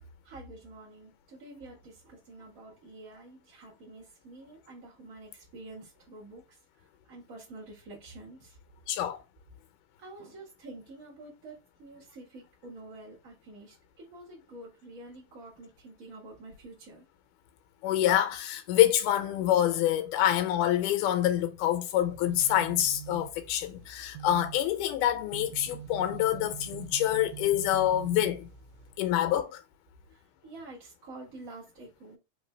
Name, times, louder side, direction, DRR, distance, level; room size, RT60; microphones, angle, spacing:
voice 1, 0.2-8.6 10.0-17.0 30.1-32.2, right 2 dB, 40° right, 1.2 m, -48 dB
voice 2, 8.9-9.2 17.8-28.5 29.0-29.6, left 12 dB, 90° left, 2.3 m, -26 dB
sound 1, 22.0-28.9, right 9 dB, 90° right, 2.2 m, -44 dB
4.6 x 3.2 x 3.2 m
omnidirectional pair, 3.6 m